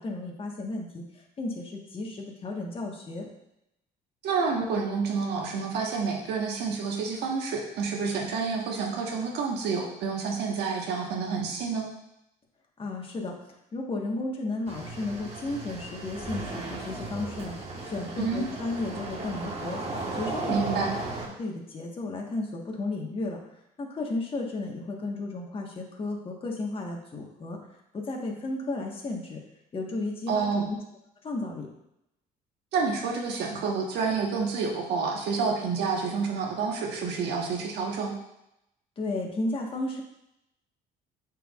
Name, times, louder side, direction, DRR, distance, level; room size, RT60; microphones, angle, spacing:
voice 1, 0.0-3.3 12.8-13.3 13.7-17.5 17.8-19.8 20.1-20.9 21.4-23.4 23.8-27.6 27.9-29.4 29.7-30.8 31.2-31.7 39.0-40.0, left 2 dB, 30° left, 0 dB, 1.4 m, -33 dB
voice 2, 4.2-11.9 18.2-18.5 20.5-20.9 30.3-30.7 32.7-38.1, right 5 dB, 80° right, 0 dB, 1.4 m, -29 dB
sound 1, 14.7-21.3, right 3 dB, 40° right, 1.4 m, -35 dB
9.0 x 4.7 x 2.4 m, 0.84 s
cardioid pair, 110°, 17 cm